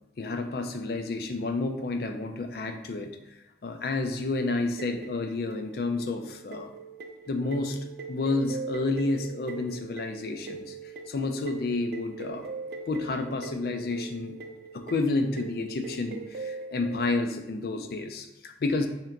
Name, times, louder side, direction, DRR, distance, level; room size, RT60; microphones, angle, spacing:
voice 1, 0.2-3.1 3.6-6.7 7.3-7.8 8.1-10.8 11.1-12.5 12.9-14.3 14.7-18.9, left 3 dB, 55° left, 6 dB, 0.4 m, -30 dB
sound 1, 4.8-17.1, right 4 dB, 55° right, 0.3 m, -41 dB
3.3 x 2.9 x 3.8 m, 0.96 s
head